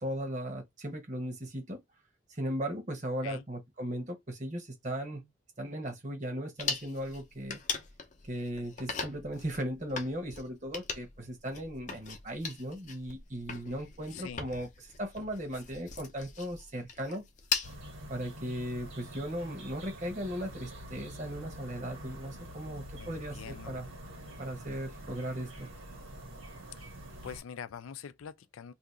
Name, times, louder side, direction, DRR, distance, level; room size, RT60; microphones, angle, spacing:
voice 1, 0.0-1.8 2.3-5.3 5.6-7.6 8.2-14.7 15.0-17.3 18.1-23.9 24.4-25.7, equal, 35° right, 1.0 m, -37 dB
sound 1, 6.6-17.7, left 6 dB, 35° left, 0.6 m, -40 dB
voice 2, 14.1-14.4 23.0-23.8 26.8-26.9 27.2-28.7, left 7 dB, 90° left, 0.4 m, -44 dB
sound 2, 17.6-27.4, right 1 dB, 85° right, 1.4 m, -46 dB
2.8 x 2.5 x 3.5 m
head